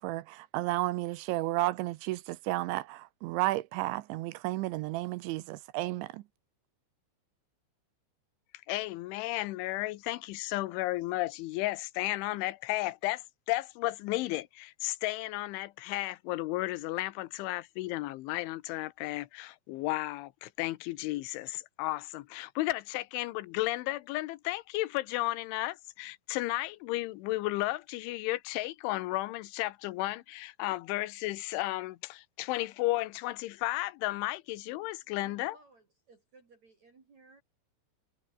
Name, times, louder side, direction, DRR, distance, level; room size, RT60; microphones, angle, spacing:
voice 1, 0.0-6.2, right 17 dB, 85° right, 3.0 m, -32 dB
voice 2, 8.7-35.6, left 18 dB, 85° left, 3.3 m, -33 dB
voice 3, 35.0-37.4, right 3 dB, 40° right, 4.8 m, -59 dB
omnidirectional pair, 5.5 m